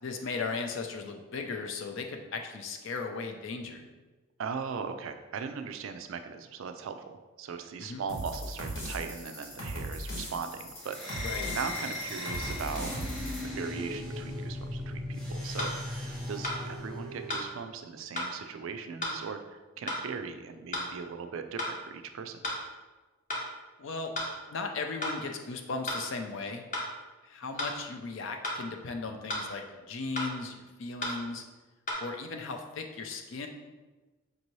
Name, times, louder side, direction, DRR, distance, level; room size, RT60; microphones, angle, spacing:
voice 1, 0.0-3.8 7.8-8.0 11.2-11.5 23.8-24.1 24.5-26.6 27.2-31.4 32.0-33.5, left 4 dB, 55° left, 4 dB, 0.4 m, -37 dB
voice 2, 4.4-12.9 13.4-22.5, right 6 dB, 65° right, 8 dB, 0.3 m, -39 dB
sound 1, 8.1-13.4, equal, 80° left, 1.4 m, -38 dB
sound 2, 10.9-17.5, left 1 dB, ahead, 0.6 m, -37 dB
sound 3, 15.6-15.7 16.4-16.6 17.3-17.5 18.2-18.3 19.0-19.2 19.9-20.0 20.7-20.9 21.6-21.7 22.4-22.6 23.3-23.5 24.1-24.3 25.0-25.2 25.9-26.0 26.7-26.9 27.6-27.8 28.4-28.6 29.3-29.5 30.2-30.3 31.0-31.2 31.9-32.0, left 1 dB, 35° left, 0.8 m, -33 dB
5.2 x 2.7 x 3.0 m, 1.2 s
head